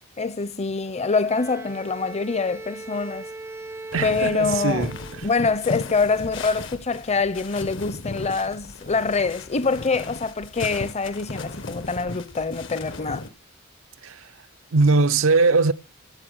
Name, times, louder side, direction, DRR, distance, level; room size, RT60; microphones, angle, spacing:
voice 1, 0.2-3.3 4.0-5.0 5.2-13.3, left 4 dB, 35° left, 0.7 m, -25 dB
Bowed string instrument, 1.2-5.6, right 2 dB, 10° right, 0.5 m, -39 dB
sound 1, 3.9-13.3, left 2 dB, 65° left, 1.2 m, -36 dB
voice 2, 3.9-5.0 14.0-14.3 14.7-15.7, right 3 dB, 80° right, 0.6 m, -20 dB
13.5 x 7.0 x 7.8 m
head